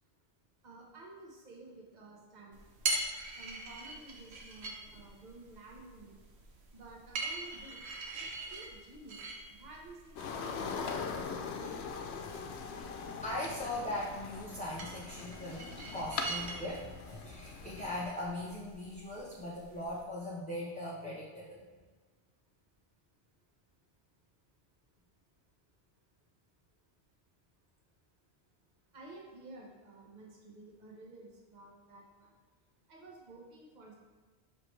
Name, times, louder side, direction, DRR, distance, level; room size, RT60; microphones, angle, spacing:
voice 1, 0.6-3.0 3.3-6.2 6.7-11.6 15.0-15.1 15.8-16.0 28.9-32.3 32.9-33.9, right 2 dB, 45° right, -2 dB, 1.1 m, -53 dB
sound 1, 2.5-20.0, right 2 dB, 90° right, 1.1 m, -43 dB
sound 2, 10.2-18.1, left 5 dB, 90° left, 0.9 m, -41 dB
voice 2, 13.2-21.6, left 1 dB, 10° left, -7 dB, 0.7 m, -40 dB
6.2 x 4.8 x 3.2 m, 1.5 s
omnidirectional pair, 1.1 m